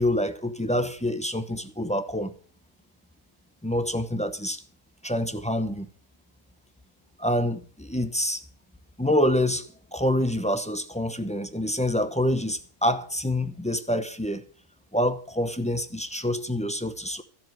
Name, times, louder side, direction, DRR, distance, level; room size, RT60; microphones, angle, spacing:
voice 1, 0.0-2.3 3.6-4.6 5.0-5.9 7.2-8.4 9.0-14.4 14.9-17.2, left 1 dB, 5° left, 0.7 m, -26 dB
13.0 x 7.7 x 6.1 m
omnidirectional pair, 1.5 m